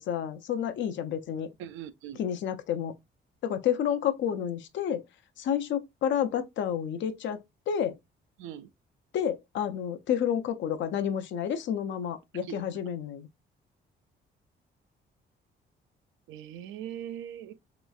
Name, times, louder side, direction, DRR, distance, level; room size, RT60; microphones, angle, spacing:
voice 1, 0.0-1.5 2.2-2.9 3.4-5.0 5.4-7.9 9.1-13.3, left 9 dB, 70° left, 0.5 m, -30 dB
voice 2, 1.6-2.2 8.4-8.7 12.4-12.6 16.3-17.5, right 10 dB, 85° right, 0.4 m, -40 dB
3.1 x 3.0 x 2.3 m
cardioid pair, 90°, 20 cm